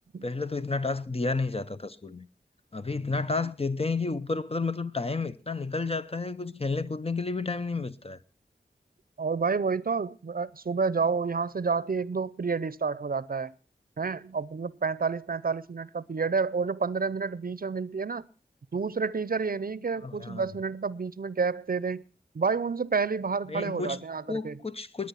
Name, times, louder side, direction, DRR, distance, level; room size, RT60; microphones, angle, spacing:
voice 1, 0.2-2.3 2.7-8.2 20.0-20.5 23.5-24.0 24.3-25.1, left 3 dB, 35° left, 0.8 m, -31 dB
voice 2, 9.2-13.5 14.0-18.3 18.7-22.0 22.3-24.6, right 5 dB, 55° right, 0.6 m, -29 dB
20.5 x 8.8 x 5.7 m
wide cardioid pair, 60°, 18 cm